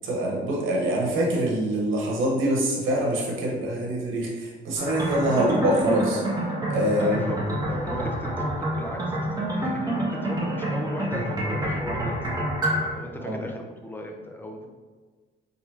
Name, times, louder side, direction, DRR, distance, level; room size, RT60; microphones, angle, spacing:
voice 1, 0.0-6.2 6.7-7.2 13.2-13.4, right 1 dB, 85° right, -2 dB, 1.1 m, -24 dB
sound 1, 4.8-12.9, right 1 dB, 20° right, 1.2 m, -28 dB
voice 2, 6.8-12.4 12.9-14.7, left 1 dB, 10° left, 1 dB, 0.6 m, -37 dB
4.2 x 3.3 x 2.8 m, 1.4 s
cardioid pair, 90°, 20 cm